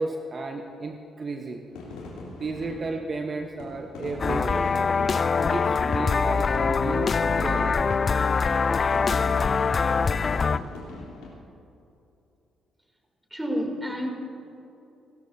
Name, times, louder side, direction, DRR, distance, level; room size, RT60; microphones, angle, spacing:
voice 1, 0.0-1.6 2.4-4.7 5.5-8.6 10.1-10.2, right 3 dB, 45° right, 4 dB, 1.0 m, -33 dB
sound 1, 1.7-11.3, left 3 dB, 75° left, 3.2 m, -42 dB
sound 2, 4.2-10.6, left 5 dB, 45° left, 0.4 m, -23 dB
voice 2, 13.3-14.1, equal, 10° right, 2 dB, 3.0 m, -29 dB
29.5 x 13.0 x 2.7 m, 2.8 s
hypercardioid pair, 45°, 0 cm